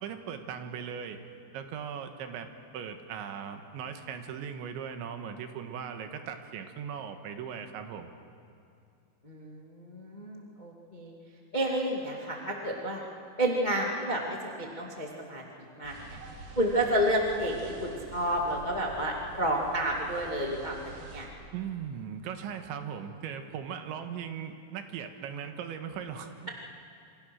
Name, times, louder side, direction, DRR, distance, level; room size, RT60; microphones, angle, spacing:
voice 1, 0.0-1.2 1.5-2.5 2.7-8.1 21.5-26.5, right 7 dB, 75° right, 6 dB, 3.6 m, -39 dB
voice 2, 9.2-11.1 11.5-13.0 13.4-15.4 15.7-16.2 16.5-21.3, right 1 dB, 70° left, -1 dB, 0.4 m, -30 dB
sound 1, 15.8-21.3, right 4 dB, 55° right, 4.4 m, -47 dB
28.0 x 25.0 x 6.4 m, 2.6 s
omnidirectional pair, 5.5 m